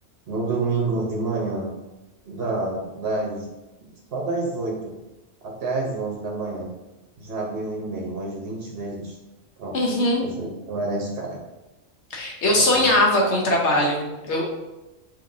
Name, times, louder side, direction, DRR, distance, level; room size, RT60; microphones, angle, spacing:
voice 1, 0.3-1.7 2.3-3.4 4.1-4.9 5.4-6.7 7.2-9.1 9.6-9.8 10.2-11.4 12.5-13.0, right 3 dB, 50° right, -3 dB, 0.9 m, -28 dB
voice 2, 9.7-10.2 12.1-14.4, left 1 dB, 60° left, -1 dB, 1.1 m, -20 dB
5.4 x 3.0 x 2.6 m, 1.0 s
omnidirectional pair, 1.4 m